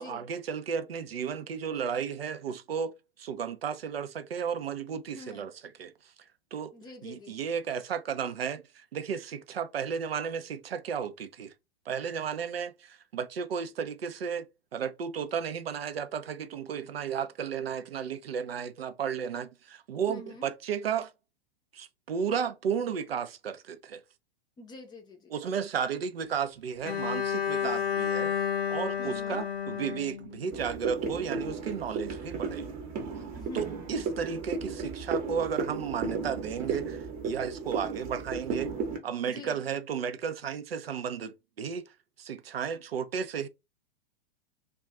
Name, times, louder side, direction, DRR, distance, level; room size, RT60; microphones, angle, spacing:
voice 1, 0.0-5.5 5.8-5.9 6.5-6.7 7.0-11.5 11.9-14.4 14.7-21.1 21.7-24.0 25.3-32.6 33.5-38.7 39.0-43.5, right 7 dB, 70° right, 0.5 m, -34 dB
voice 2, 5.2-5.5 6.7-7.4 20.1-20.5 24.6-25.3 27.6-27.9 29.0-29.4 33.3-33.8 39.2-39.6, left 2 dB, 15° left, 0.6 m, -46 dB
Bowed string instrument, 26.8-30.9, left 8 dB, 65° left, 0.7 m, -31 dB
sound 1, 30.5-39.0, right 4 dB, 30° right, 0.9 m, -34 dB
2.3 x 2.2 x 3.7 m
figure-of-eight pair, 100°, 31 cm